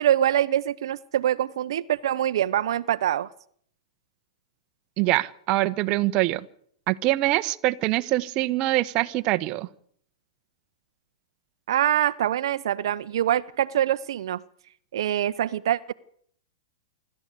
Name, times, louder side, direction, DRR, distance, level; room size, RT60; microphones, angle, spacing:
voice 1, 0.0-3.3 11.7-14.4 14.9-15.9, right 11 dB, 70° right, 0.8 m, -24 dB
voice 2, 5.0-6.4 6.9-9.7, right 17 dB, 35° right, 1.1 m, -24 dB
26.0 x 13.0 x 8.3 m
hypercardioid pair, 135°, 3 cm